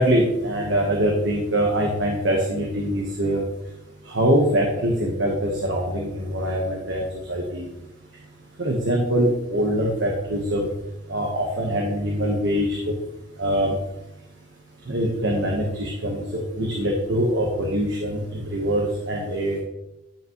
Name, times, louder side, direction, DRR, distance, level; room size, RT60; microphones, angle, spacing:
voice 1, 0.0-3.4 4.1-7.0 7.3-7.7 8.6-10.7 11.1-12.8 13.4-13.7 14.9-19.6, equal, 65° right, 0 dB, 1.2 m, -23 dB
10.5 x 6.0 x 3.0 m, 0.92 s
head